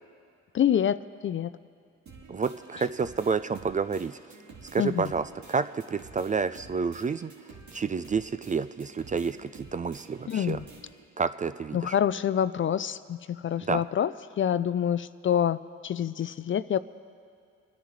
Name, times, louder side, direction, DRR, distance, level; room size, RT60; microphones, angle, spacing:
voice 1, 0.5-1.5 4.8-5.1 10.3-10.6 11.7-14.1 14.4-16.8, left 9 dB, 40° left, 15 dB, 0.4 m, -27 dB
sound 1, 2.1-11.1, right 4 dB, 65° right, 2.2 m, -50 dB
voice 2, 2.3-4.2 4.7-7.3 7.7-10.6 11.2-11.9 13.7-13.8, right 5 dB, 25° right, 12 dB, 0.4 m, -29 dB
28.5 x 10.5 x 3.2 m, 2.3 s
supercardioid pair, 65°, 31 cm